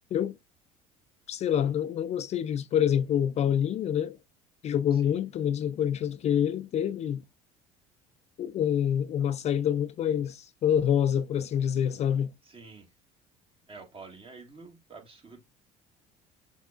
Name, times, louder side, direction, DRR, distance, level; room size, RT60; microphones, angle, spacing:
voice 1, 1.3-4.2 4.6-7.2 8.4-12.3, left 9 dB, 40° left, 0.4 m, -27 dB
voice 2, 4.9-5.2 12.4-12.9 13.7-15.4, right 4 dB, 35° right, 1.9 m, -48 dB
6.4 x 3.3 x 2.4 m
hypercardioid pair, 75°, 17 cm